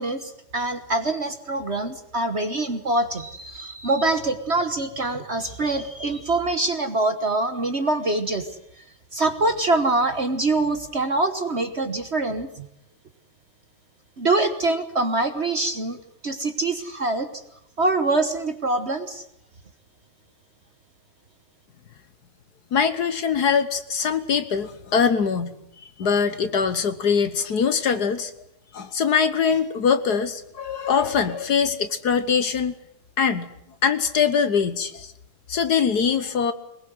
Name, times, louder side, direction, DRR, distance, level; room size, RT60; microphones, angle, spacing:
voice 1, 0.0-8.5 9.1-12.7 14.2-16.0 16.2-17.3 17.8-19.2, right 2 dB, 40° right, 8 dB, 1.3 m, -24 dB
voice 2, 22.7-25.6 26.0-28.3 28.7-32.7 33.2-33.5 33.8-35.1 35.5-36.5, left 6 dB, 55° left, 11 dB, 1.5 m, -22 dB
22.5 x 20.5 x 8.0 m, 0.77 s
omnidirectional pair, 2.1 m